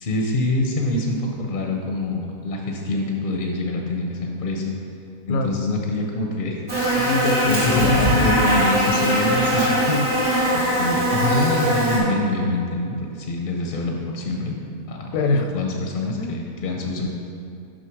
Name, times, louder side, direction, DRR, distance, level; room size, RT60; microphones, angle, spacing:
voice 1, 0.0-4.7 5.3-6.6 6.9-7.1 7.5-9.7 10.5-14.5 14.9-15.1 15.5-17.1, left 2 dB, 50° left, 1 dB, 0.6 m, -25 dB
voice 2, 5.3-5.6 7.0-8.2 9.7-10.1 15.1-15.5 16.2-16.5, left 3 dB, 75° left, 5 dB, 1.0 m, -24 dB
Buzz, 6.7-12.0, equal, 85° right, 2.5 m, -21 dB
6.4 x 5.6 x 4.6 m, 2.6 s
omnidirectional pair, 1.6 m